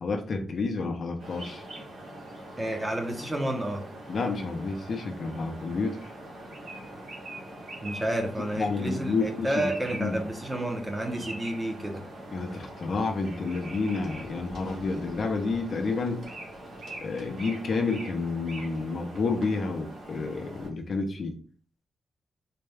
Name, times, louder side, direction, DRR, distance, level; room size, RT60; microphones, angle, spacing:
voice 1, 0.0-1.6 4.1-6.0 8.6-9.7 10.0-10.2 11.2-11.3 12.3-16.2 17.0-21.3, left 3 dB, 50° left, 4 dB, 0.6 m, -30 dB
sound 1, 1.2-20.7, right 1 dB, 70° right, 1.3 m, -43 dB
voice 2, 2.6-3.8 7.8-12.0, right 1 dB, 15° right, 2 dB, 0.7 m, -30 dB
4.1 x 2.2 x 3.4 m, 0.43 s
wide cardioid pair, 165°, 0 cm